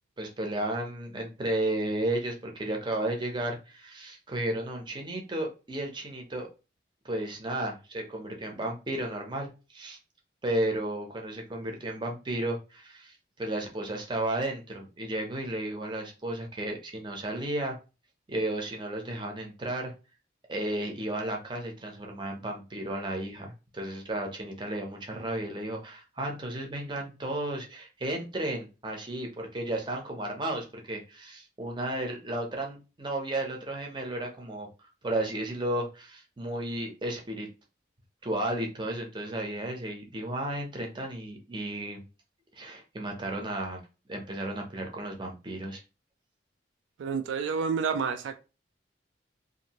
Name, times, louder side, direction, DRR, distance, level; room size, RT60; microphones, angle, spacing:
voice 1, 0.2-6.5 7.0-10.0 10.4-17.8 18.3-19.9 20.5-34.7 35.0-37.5 38.2-42.0 42.6-43.8 44.1-45.8, right 1 dB, 25° right, 0.6 m, -33 dB
voice 2, 47.0-48.4, right 5 dB, 80° right, 0.3 m, -29 dB
2.7 x 2.5 x 2.9 m
head